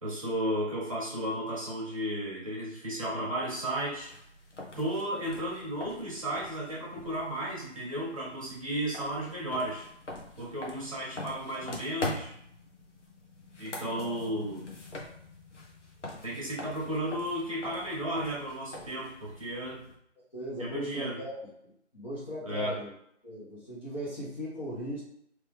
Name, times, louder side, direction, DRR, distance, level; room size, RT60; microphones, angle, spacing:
voice 1, 0.0-4.1 4.7-9.9 10.4-12.3 13.6-14.6 16.2-19.8 20.6-21.2 22.4-22.8, right 1 dB, 30° right, -5 dB, 1.0 m, -34 dB
sound 1, 3.9-19.9, left 2 dB, 75° left, 1.2 m, -44 dB
voice 2, 13.6-14.2 20.3-21.4 21.9-22.9 23.2-25.0, equal, 40° left, -11 dB, 1.4 m, -38 dB
3.2 x 2.9 x 3.4 m, 0.70 s
figure-of-eight pair, 165°, 36 cm